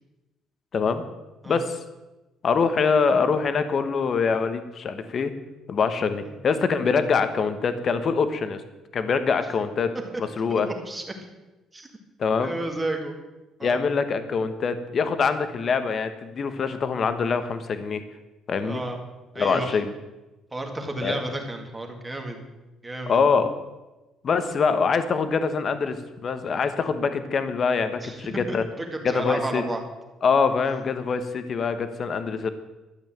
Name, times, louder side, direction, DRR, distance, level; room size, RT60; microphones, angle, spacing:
voice 1, 0.7-1.0 1.5-1.8 2.4-5.3 5.7-8.6 8.9-9.9 10.2-10.7 12.2-12.6 13.6-18.0 18.5-18.8 19.4-19.9 21.0-21.2 23.1-23.5 24.2-28.6 29.0-29.6 30.2-32.5, left 5 dB, 30° left, 10 dB, 1.1 m, -24 dB
voice 2, 10.5-11.0 11.7-11.9 12.4-13.1 13.6-13.8 18.6-19.0 19.3-19.8 20.5-22.4 22.8-23.2 28.0-29.8, right 2 dB, 10° right, 3 dB, 1.9 m, -32 dB
12.5 x 8.1 x 9.1 m, 1.1 s
cardioid pair, 175°, 0 cm